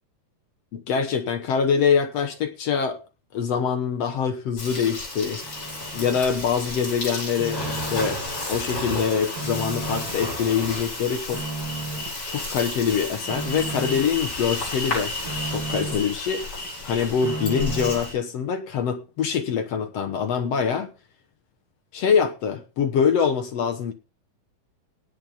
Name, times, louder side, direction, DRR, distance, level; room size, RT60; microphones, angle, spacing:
voice 1, 0.7-3.0 3.3-5.4 5.9-8.2 8.5-11.6 12.3-15.1 15.5-16.5 16.8-20.9 21.9-23.9, left 7 dB, 65° left, 1.7 m, -24 dB
Insect, 4.6-18.1, left 2 dB, 30° left, 8.4 m, -32 dB
sound 1, 5.4-6.3 6.7-8.3 8.7-10.3 10.6-12.2 12.6-14.2 14.6-16.2 16.6-18.1, right 3 dB, 35° right, 2.8 m, -35 dB
18.5 x 6.8 x 5.5 m
omnidirectional pair, 4.2 m